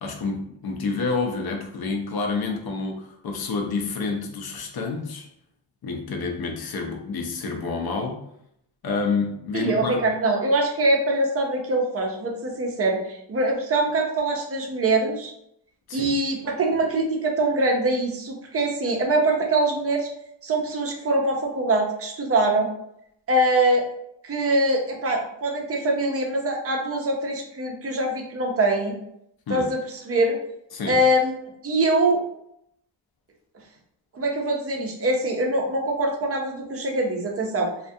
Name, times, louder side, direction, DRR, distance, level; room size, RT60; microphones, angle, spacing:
voice 1, 0.0-5.3 5.8-8.2 8.8-10.0 15.9-16.1 29.5-29.7 30.7-31.0, left 4 dB, 50° left, 2 dB, 0.5 m, -28 dB
voice 2, 9.5-15.3 15.9-20.1 20.4-22.7 23.3-23.8 24.2-29.0 29.5-30.4 30.9-32.2 34.1-37.7, right 2 dB, 30° right, 0 dB, 0.4 m, -23 dB
2.2 x 2.1 x 2.6 m, 0.75 s
wide cardioid pair, 130°, 47 cm